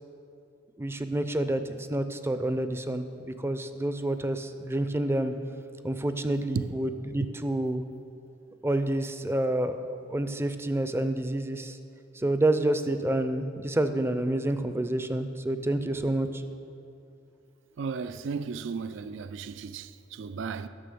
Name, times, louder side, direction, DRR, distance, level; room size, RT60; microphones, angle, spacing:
voice 1, 0.8-5.3 5.8-7.8 8.6-9.8 10.1-11.8 12.2-16.4, right 1 dB, 15° right, 0.5 m, -28 dB
voice 2, 17.8-20.7, right 5 dB, 70° right, 0.4 m, -34 dB
12.5 x 5.7 x 6.9 m
head